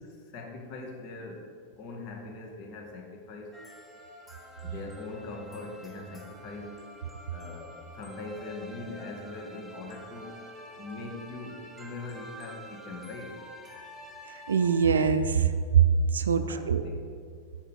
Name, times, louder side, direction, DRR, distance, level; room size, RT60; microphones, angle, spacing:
voice 1, 0.0-1.5 1.8-3.6 4.6-7.0 7.3-10.4 10.8-13.4 16.3-17.0, left 3 dB, 45° left, 1 dB, 1.0 m, -41 dB
sound 1, 3.5-15.1, equal, 10° left, 0.9 m, -48 dB
voice 2, 14.3-16.8, right 6 dB, 70° right, 9 dB, 0.3 m, -23 dB
7.5 x 5.2 x 4.3 m, 2.3 s
figure-of-eight pair, 90°, 0 cm